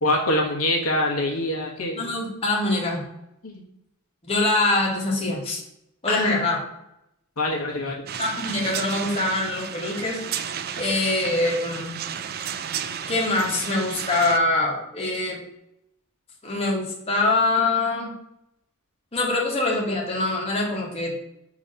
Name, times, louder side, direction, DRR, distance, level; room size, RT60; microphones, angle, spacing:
voice 1, 0.0-2.1 3.4-3.5 6.1-6.5 7.4-8.0, left 1 dB, 85° left, -1 dB, 1.3 m, -24 dB
voice 2, 2.0-3.0 4.2-5.6 6.0-6.6 8.2-10.2 10.8-12.0 13.1-15.4 16.4-18.1 19.1-21.1, left 2 dB, 30° left, -2 dB, 1.4 m, -24 dB
sound 1, 8.1-14.4, right 8 dB, 45° right, 0.4 m, -33 dB
6.0 x 3.1 x 5.2 m, 0.81 s
head